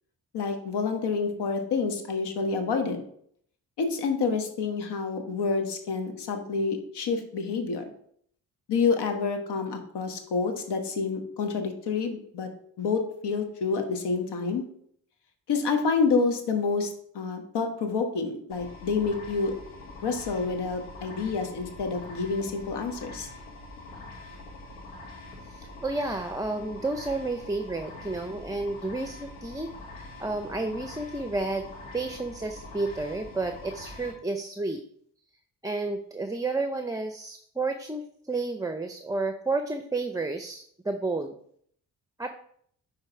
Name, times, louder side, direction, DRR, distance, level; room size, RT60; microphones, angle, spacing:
voice 1, 0.3-3.0 3.8-7.8 8.7-12.5 12.8-14.6 15.5-19.5 20.0-23.3, left 4 dB, 65° left, 6 dB, 1.4 m, -28 dB
sound 1, 18.5-34.1, left 2 dB, 85° left, 1.5 m, -44 dB
voice 2, 25.5-29.7 29.9-31.7 31.9-34.8 35.6-41.3 42.2-42.3, right 2 dB, 10° right, 6 dB, 0.7 m, -31 dB
9.7 x 3.5 x 4.6 m, 0.65 s
hypercardioid pair, 40°, 43 cm